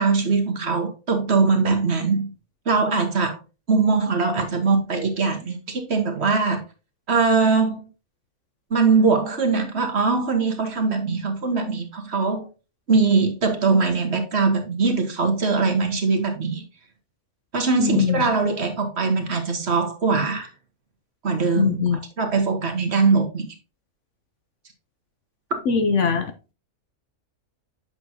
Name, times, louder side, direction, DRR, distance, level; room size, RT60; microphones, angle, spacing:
voice 1, 0.0-2.3 2.6-3.4 3.7-6.6 7.1-7.9 8.7-12.5 12.9-16.6 17.5-20.5 21.2-21.8 22.2-23.5 25.5-25.6, right 4 dB, 50° right, 1.5 m, -21 dB
voice 2, 17.8-18.3 21.6-22.0 25.7-26.3, left 5 dB, 60° left, 1.0 m, -21 dB
7.7 x 6.1 x 2.7 m
omnidirectional pair, 1.5 m